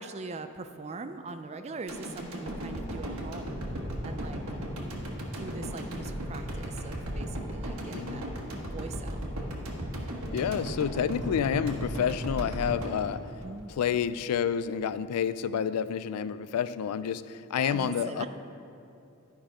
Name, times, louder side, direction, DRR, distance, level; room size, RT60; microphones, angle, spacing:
voice 1, 0.0-4.4 5.2-8.3 8.7-9.2 13.4-13.7 17.6-18.3, right 3 dB, 30° right, 8 dB, 0.4 m, -41 dB
sound 1, 1.9-14.1 14.5-14.6, equal, 70° right, 1.3 m, -36 dB
voice 2, 7.9-8.2 10.3-13.3 13.7-18.3, left 8 dB, 90° left, 15 dB, 0.3 m, -29 dB
12.0 x 5.3 x 5.0 m, 2.6 s
head